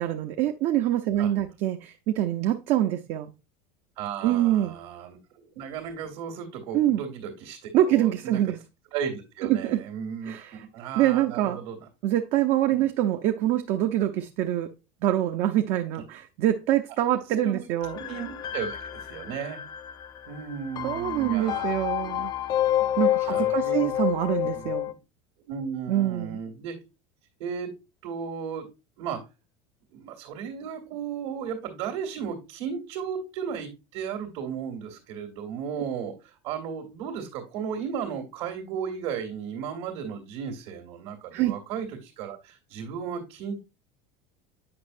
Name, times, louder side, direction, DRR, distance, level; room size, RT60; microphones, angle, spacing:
voice 1, 0.0-3.3 4.2-4.8 6.7-7.0 7.7-8.6 9.4-9.8 10.3-10.6 11.0-11.6 12.0-14.7 15.0-18.0 20.8-22.3 23.0-24.9 25.9-26.4 41.3-41.6, right 12 dB, 55° right, 0.5 m, -25 dB
voice 2, 4.0-8.5 8.9-10.3 10.7-11.9 12.7-12.8 17.4-17.6 18.0-19.6 20.3-21.7 22.5-22.6 23.3-23.9 24.5-24.7 25.5-26.8 27.4-27.7 28.0-28.7 29.0-29.2 29.9-43.6, right 7 dB, 85° right, 1.9 m, -35 dB
sound 1, 17.8-24.9, left 12 dB, 30° left, 0.3 m, -29 dB
8.6 x 5.2 x 2.5 m
supercardioid pair, 130°, 13 cm